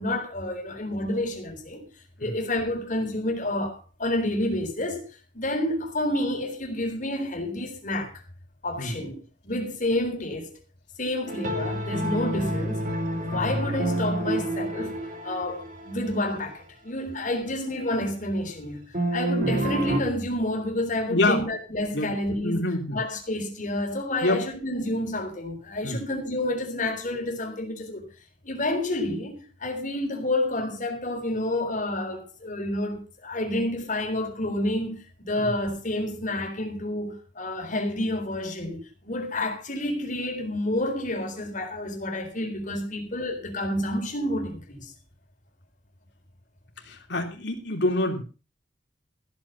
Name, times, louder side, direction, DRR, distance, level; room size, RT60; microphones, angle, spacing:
voice 1, 0.0-1.9 2.2-8.1 8.6-9.2 9.4-10.5 11.0-12.8 13.1-15.0 15.2-22.6 22.9-28.1 28.4-44.9, left 1 dB, 45° left, 3.9 m, -29 dB
sound 1, 11.3-16.1 18.9-20.0, right 1 dB, 45° right, 2.6 m, -28 dB
voice 2, 21.1-21.4 21.9-22.1 22.4-23.0 24.2-24.4 25.8-26.1 35.4-35.5 46.8-48.2, left 2 dB, 70° left, 3.2 m, -26 dB
15.0 x 8.8 x 5.6 m
head